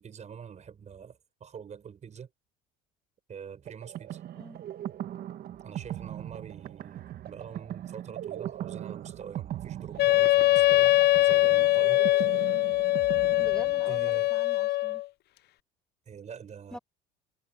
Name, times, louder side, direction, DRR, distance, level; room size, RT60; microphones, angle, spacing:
voice 1, 0.0-2.3 3.3-4.2 5.6-12.0 13.9-14.3 16.1-16.8, right 7 dB, 35° right, 5.3 m, -45 dB
sound 1, 3.7-14.2, right 12 dB, 50° right, 1.3 m, -40 dB
Wind instrument woodwind instrument, 10.0-15.0, left 17 dB, 55° left, 0.8 m, -23 dB
voice 2, 13.4-15.0 16.7-16.8, left 1 dB, 5° left, 6.7 m, -44 dB
supercardioid pair, 100°, 20 cm